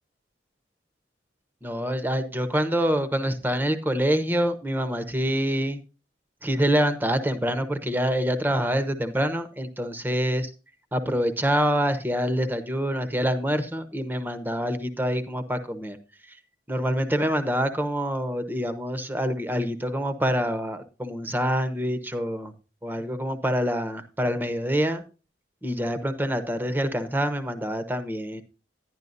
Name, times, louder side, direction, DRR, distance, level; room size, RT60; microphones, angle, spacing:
voice 1, 1.6-5.8 6.4-10.5 10.9-16.0 16.3-16.4 16.7-22.5 22.8-25.0 25.6-28.4, equal, 10° right, 10 dB, 1.0 m, -26 dB
11.0 x 11.0 x 2.6 m, 0.32 s
head